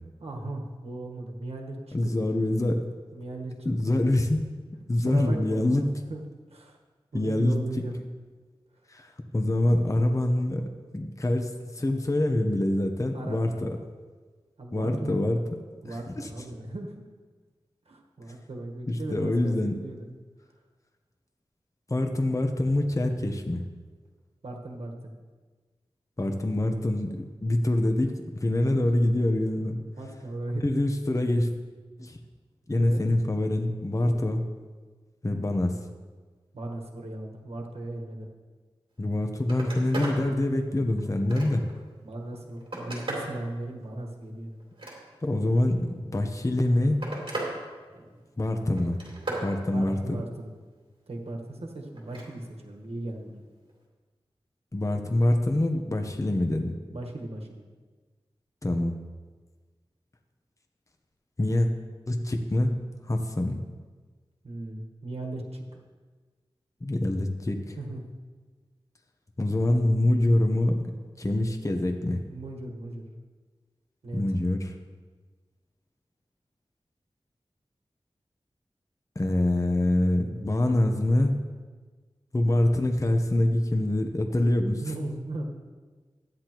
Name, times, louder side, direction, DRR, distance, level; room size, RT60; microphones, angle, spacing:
voice 1, 0.2-2.5 3.1-3.5 5.0-6.2 6.5-6.8 7.1-8.0 13.1-13.8 14.6-15.2 15.8-17.1 17.8-20.1 24.4-25.1 28.9-29.0 29.6-30.9 32.7-33.0 35.3-35.8 36.5-38.3 41.4-41.6 42.0-44.5 49.7-50.6 51.1-53.4 56.9-57.6 64.4-65.8 67.8-68.0 72.3-73.0 74.0-74.4 84.8-85.4, right 2 dB, 90° right, 0 dB, 1.4 m, -37 dB
voice 2, 1.9-2.9 3.6-4.4 4.9-5.8 7.1-7.6 8.9-10.6 10.9-13.8 14.7-15.4 15.8-16.3 18.9-19.7 21.9-23.6 26.2-29.8 30.6-31.5 32.0-32.2 32.7-34.4 35.2-35.8 39.0-41.6 45.2-47.0 48.4-49.0 49.4-50.2 54.7-56.8 58.6-58.9 61.4-61.7 62.1-62.7 63.1-63.6 66.8-67.8 69.4-70.8 71.2-72.2 74.1-74.7 79.2-81.4 82.3-84.8, left 1 dB, 30° left, 4 dB, 0.9 m, -25 dB
Telephone, 39.0-39.1 39.4-40.2 40.7-41.8 42.3-43.4 44.6-45.4 46.4-47.5 47.9-48.4 48.8-49.5 52.0-52.3 53.7-53.8, right 2 dB, 55° right, 3.0 m, -36 dB
13.5 x 9.7 x 3.0 m, 1.4 s
wide cardioid pair, 50°, 10 cm